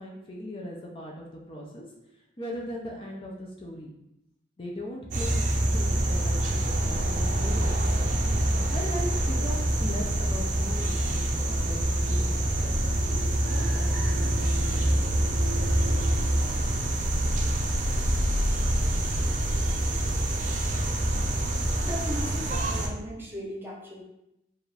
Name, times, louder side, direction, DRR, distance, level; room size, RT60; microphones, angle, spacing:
voice 1, 0.0-1.8 2.4-3.9 4.6-7.8 8.7-14.3 14.6-15.0, equal, 30° left, -2 dB, 0.6 m, -39 dB
sound 1, 5.1-22.9, right 1 dB, 45° right, 0.6 m, -26 dB
voice 2, 21.8-24.0, equal, 10° right, -4 dB, 0.8 m, -37 dB
4.8 x 2.5 x 3.3 m, 0.85 s
head